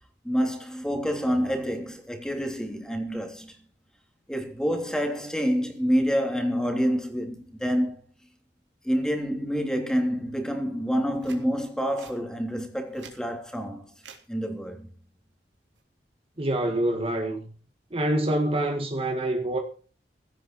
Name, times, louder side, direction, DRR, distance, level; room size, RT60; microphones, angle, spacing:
voice 1, 0.2-3.6 4.3-8.0 8.8-13.9 14.3-14.9, equal, 5° left, 3.2 m, -27 dB
sound 1, 11.1-11.4 12.0-12.2 12.8-13.2 14.0-14.2 15.5-15.8, right 5 dB, 90° right, 3.5 m, -47 dB
voice 2, 16.4-17.5 17.9-19.6, right 1 dB, 30° right, 1.8 m, -26 dB
16.5 x 12.5 x 4.7 m
head